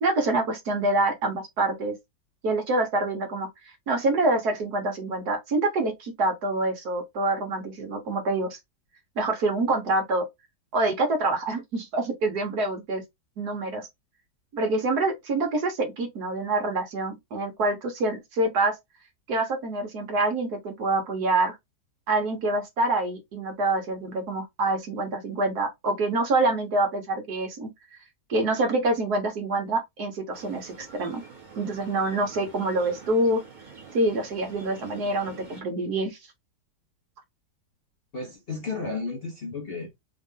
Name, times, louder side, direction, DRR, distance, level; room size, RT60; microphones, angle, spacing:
voice 1, 0.0-1.9 2.4-8.6 9.2-10.2 10.7-13.0 13.4-13.9 14.5-18.7 19.3-21.5 22.1-27.7 28.3-31.2 31.6-33.4 33.9-36.2, right 2 dB, 65° right, 1.6 m, -26 dB
sound 1, 30.3-35.6, right 5 dB, 30° right, 1.3 m, -46 dB
voice 2, 38.1-40.0, left 4 dB, 45° left, 0.8 m, -33 dB
3.7 x 2.5 x 3.6 m
omnidirectional pair, 1.9 m